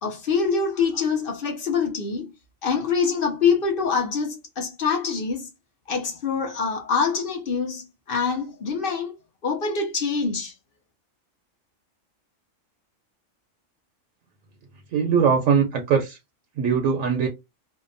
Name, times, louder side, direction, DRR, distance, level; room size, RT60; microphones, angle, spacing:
voice 1, 0.0-2.3 2.6-5.5 5.9-9.1 9.4-10.5, left 5 dB, 55° left, 0.7 m, -25 dB
voice 2, 14.9-16.2 16.6-17.3, right 6 dB, 80° right, 1.0 m, -21 dB
2.7 x 2.1 x 2.5 m
omnidirectional pair, 1.4 m